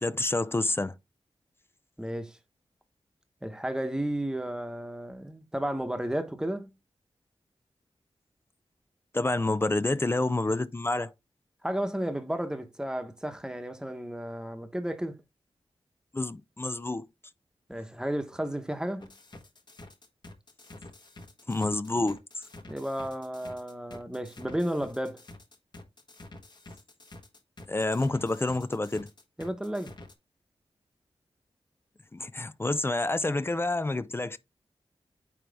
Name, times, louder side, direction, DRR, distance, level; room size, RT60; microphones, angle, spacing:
voice 1, 0.0-0.9 9.1-11.1 16.1-17.0 21.5-22.4 27.7-29.1 32.1-34.4, left 2 dB, 25° left, 0.4 m, -28 dB
voice 2, 2.0-2.4 3.4-6.7 11.6-15.2 17.7-19.1 22.7-25.2 29.4-29.9, right 1 dB, 5° right, 1.1 m, -33 dB
sound 1, 19.0-30.1, left 2 dB, 45° left, 1.4 m, -48 dB
9.1 x 3.1 x 3.5 m
wide cardioid pair, 75°, 10 cm